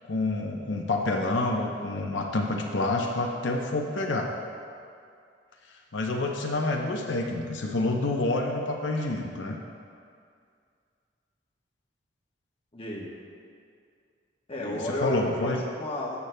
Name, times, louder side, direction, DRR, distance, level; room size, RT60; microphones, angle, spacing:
voice 1, 0.0-4.3 5.9-9.6 14.6-15.6, left 2 dB, 75° left, 0 dB, 0.7 m, -28 dB
voice 2, 12.7-13.1 14.5-16.2, left 1 dB, 30° left, -3 dB, 1.0 m, -32 dB
13.5 x 8.2 x 2.2 m, 2.3 s
head